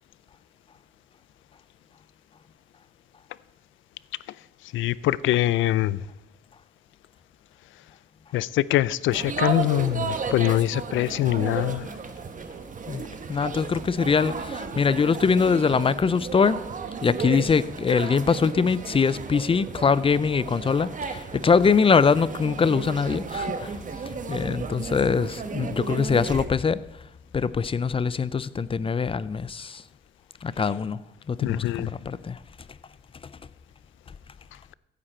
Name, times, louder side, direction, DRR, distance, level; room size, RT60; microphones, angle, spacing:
voice 1, 4.7-6.0 8.3-11.9 31.4-31.9, left 14 dB, 80° left, 0.4 m, -23 dB
sound 1, 9.1-26.5, right 5 dB, 40° right, 1.2 m, -34 dB
voice 2, 13.3-16.6 17.0-23.8 24.3-26.8 27.3-29.8 30.4-31.0 31.3-32.4, left 5 dB, 25° left, 0.5 m, -23 dB
15.5 x 9.2 x 4.4 m
cardioid pair, 90°, 20 cm